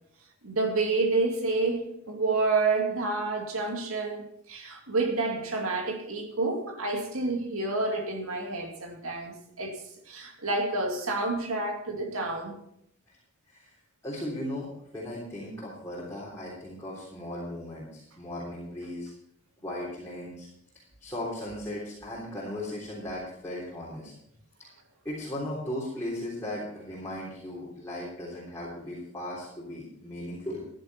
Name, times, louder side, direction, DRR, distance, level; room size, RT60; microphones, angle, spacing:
voice 1, 0.4-12.6, right 3 dB, 85° right, 2.4 m, -29 dB
voice 2, 14.0-19.1 19.6-20.5 21.0-24.1 25.1-30.7, left 1 dB, 15° left, 3.5 m, -37 dB
14.5 x 11.0 x 4.3 m
head